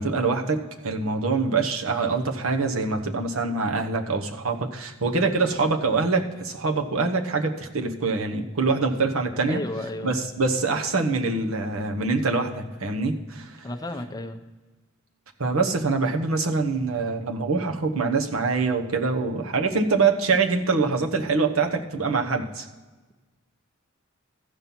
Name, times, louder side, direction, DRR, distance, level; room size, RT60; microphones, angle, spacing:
voice 1, 0.0-9.6 10.0-13.6 15.4-22.7, right 4 dB, 80° right, 4 dB, 1.1 m, -24 dB
voice 2, 9.5-10.1 13.6-14.4, left 1 dB, 20° left, 6 dB, 0.6 m, -32 dB
14.0 x 5.5 x 5.9 m, 1.3 s
head